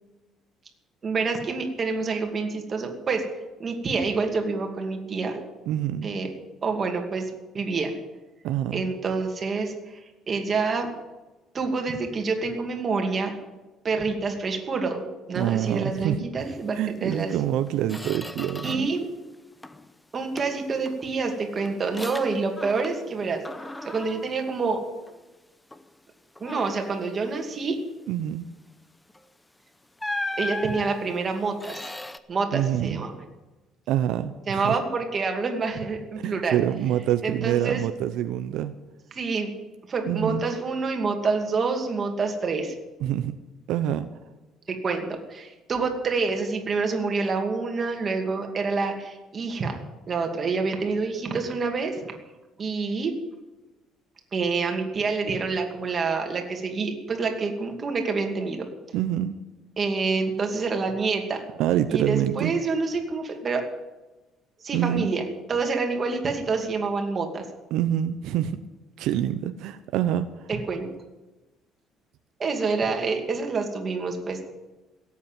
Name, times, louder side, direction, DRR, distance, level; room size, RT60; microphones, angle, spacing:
voice 1, 1.0-3.2 3.6-5.4 6.0-6.3 6.6-7.9 8.7-10.9 11.5-13.3 13.8-17.3 18.6-19.1 20.1-23.4 23.8-24.8 26.4-27.8 30.4-31.8 32.3-33.1 34.5-36.6 37.2-37.8 39.1-39.5 39.9-42.7 44.7-49.8 50.1-52.1 52.6-53.1 54.3-58.7 59.8-61.4 61.9-63.6 64.6-65.2 65.5-67.4 70.5-70.9 72.4-74.5, right 4 dB, 30° right, 3 dB, 2.4 m, -27 dB
voice 2, 5.7-6.1 8.4-8.8 15.4-16.2 16.7-18.9 28.1-28.4 32.5-33.0 33.9-34.7 36.2-38.7 40.1-40.5 43.0-43.3 43.7-44.1 58.9-59.4 61.6-62.5 64.7-65.1 67.7-68.6 69.0-70.5, right 11 dB, 80° right, 10 dB, 0.7 m, -26 dB
Squeak, 17.1-17.2 17.6-19.0 19.3-19.9 20.4-23.2 23.4-25.3 25.7-25.9 26.4-27.0 29.1-29.3 30.0-32.2, left 2 dB, 10° left, 0.7 m, -37 dB
16.5 x 8.4 x 9.2 m, 1.1 s
cardioid pair, 140°, 0 cm